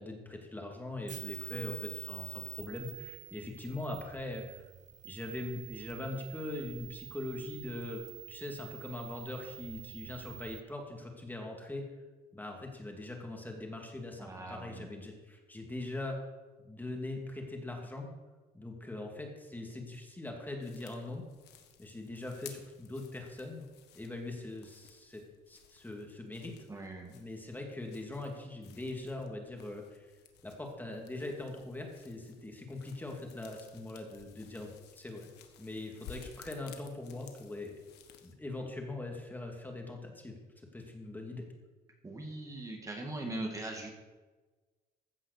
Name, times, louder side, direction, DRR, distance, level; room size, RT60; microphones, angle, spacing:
voice 1, 0.0-4.7 5.0-11.9 12.3-16.2 16.6-18.1 18.5-21.2 21.8-23.6 24.0-26.6 27.1-30.1 30.4-35.3 35.6-37.7 38.2-40.4 40.7-41.5, left 2 dB, 10° left, 1 dB, 2.2 m, -41 dB
sound 1, 1.0-10.6, right 11 dB, 45° right, 0.6 m, -47 dB
voice 2, 14.2-14.9 26.7-27.1 42.0-43.9, right 2 dB, 20° right, 2 dB, 1.9 m, -40 dB
sound 2, 20.6-38.3, left 8 dB, 80° left, 1.5 m, -56 dB
15.5 x 5.6 x 6.6 m, 1.3 s
cardioid pair, 110°, 17 cm